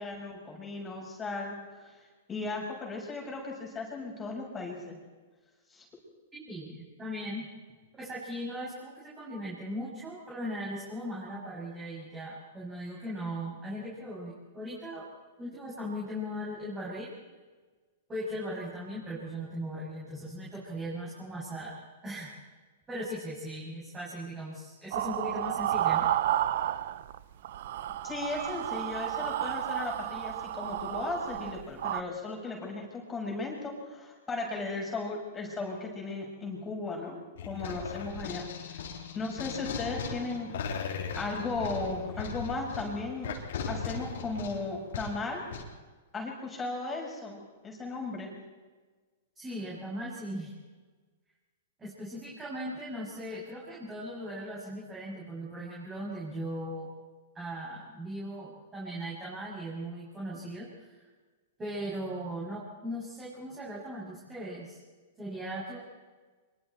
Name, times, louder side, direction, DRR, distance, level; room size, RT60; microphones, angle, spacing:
voice 1, 0.0-2.0 2.3-4.9 5.7-5.8 28.0-37.2 37.5-38.8 39.1-43.3 43.7-45.4 46.1-48.3, left 3 dB, 15° left, -1 dB, 6.0 m, -36 dB
voice 2, 6.3-7.5 8.0-15.1 15.4-17.1 18.1-22.4 22.9-26.1 49.4-50.5 51.8-56.9 57.3-61.0 61.6-64.8 65.2-65.8, equal, 15° right, -6 dB, 7.3 m, -38 dB
sound 1, 24.9-27.2 27.4-32.0, right 12 dB, 60° right, 0.8 m, -31 dB
sound 2, 37.4-45.6, left 5 dB, 70° left, 3.7 m, -38 dB
25.0 x 23.5 x 4.5 m, 1.3 s
hypercardioid pair, 125°, 0 cm